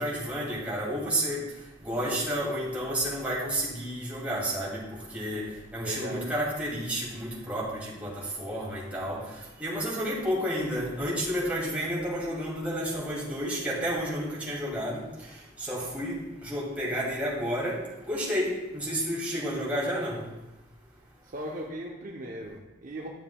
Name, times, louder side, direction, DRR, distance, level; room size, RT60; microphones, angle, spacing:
voice 1, 0.0-1.5 1.8-17.8 18.1-20.2, equal, 10° right, -6 dB, 2.5 m, -31 dB
voice 2, 5.8-6.3 21.3-23.1, equal, 45° right, -1 dB, 0.7 m, -37 dB
12.0 x 7.1 x 2.3 m, 1.0 s
head